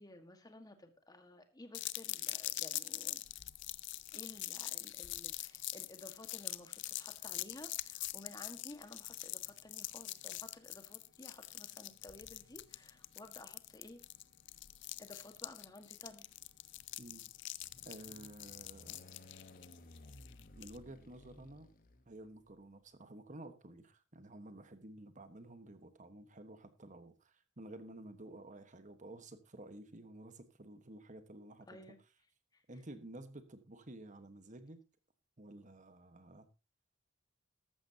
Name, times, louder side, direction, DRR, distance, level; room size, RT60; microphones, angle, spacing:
voice 1, 0.0-3.2 4.1-14.0 15.0-16.3 31.7-32.0 32.5-32.6, left 1 dB, 20° left, 7 dB, 1.6 m, -54 dB
sound 1, 1.7-20.8, left 16 dB, 60° left, 0.6 m, -44 dB
sound 2, 7.2-7.9 8.9-22.6, left 1 dB, 45° left, 1.2 m, -61 dB
voice 2, 17.0-17.3 17.8-19.0 20.6-21.7 22.1-31.7 32.7-34.8 35.4-36.5, right 1 dB, 40° right, 10 dB, 1.3 m, -52 dB
14.0 x 12.5 x 2.8 m, 0.29 s
head